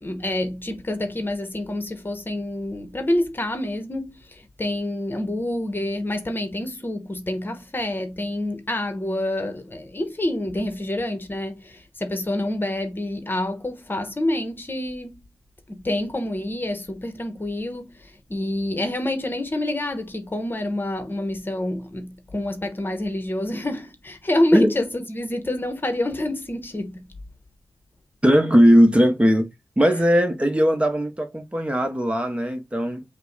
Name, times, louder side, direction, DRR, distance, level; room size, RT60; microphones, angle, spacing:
voice 1, 0.0-15.3 15.7-27.1, left 1 dB, 30° left, 1.1 m, -27 dB
voice 2, 28.2-29.5 29.8-33.0, equal, 15° right, 1.0 m, -18 dB
5.5 x 2.2 x 3.9 m
cardioid pair, 70°, 7 cm